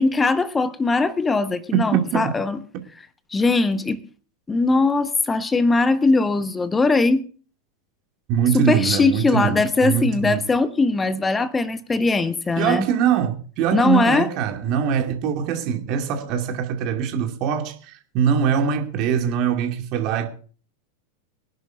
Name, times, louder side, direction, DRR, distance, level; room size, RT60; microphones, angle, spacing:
voice 1, 0.0-2.6 3.3-4.0 4.5-7.2 8.5-12.9 13.7-14.3, left 3 dB, 15° left, 1.0 m, -20 dB
voice 2, 1.9-2.3 8.3-10.4 12.6-20.3, right 8 dB, 40° right, 2.5 m, -23 dB
24.0 x 11.0 x 2.6 m
figure-of-eight pair, 90°, 0 cm